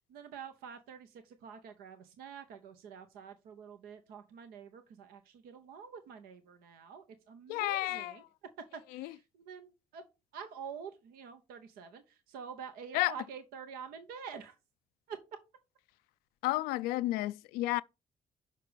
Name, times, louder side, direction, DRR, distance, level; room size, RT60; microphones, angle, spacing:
voice 1, 0.1-8.2 8.7-10.0 10.3-14.6 15.1-15.2, right 7 dB, 85° right, 0.8 m, -47 dB
voice 2, 7.5-8.1 9.0-9.1 12.9-13.1 16.4-17.8, left 17 dB, 90° left, 0.4 m, -31 dB
6.7 x 5.2 x 5.0 m
supercardioid pair, 55°, 15 cm